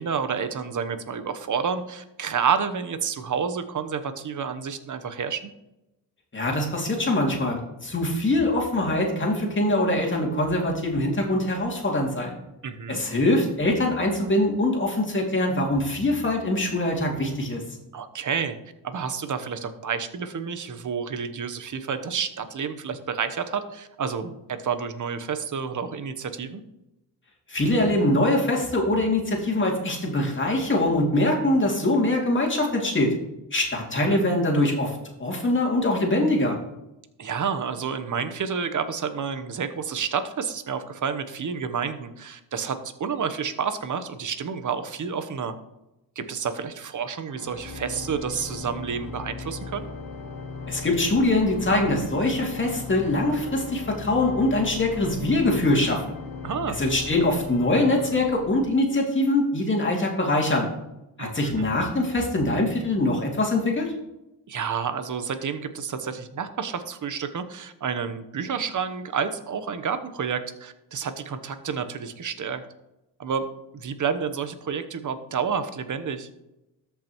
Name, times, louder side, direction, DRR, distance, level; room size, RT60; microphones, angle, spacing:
voice 1, 0.0-5.5 12.6-13.0 17.9-18.6 18.8-26.6 34.0-34.2 37.2-45.5 46.2-49.9 56.4-56.8 61.2-61.7 64.5-72.6 73.2-73.5 73.7-76.3, right 6 dB, 45° right, 10 dB, 1.1 m, -29 dB
voice 2, 6.3-12.4 12.9-17.6 27.5-33.1 33.5-36.6 50.7-56.1 56.8-60.7 61.2-63.9, left 1 dB, 30° left, -1 dB, 2.6 m, -23 dB
Organ, 47.3-59.1, left 3 dB, 50° left, 1.5 m, -37 dB
13.5 x 5.6 x 3.1 m, 0.90 s
supercardioid pair, 65°, 42 cm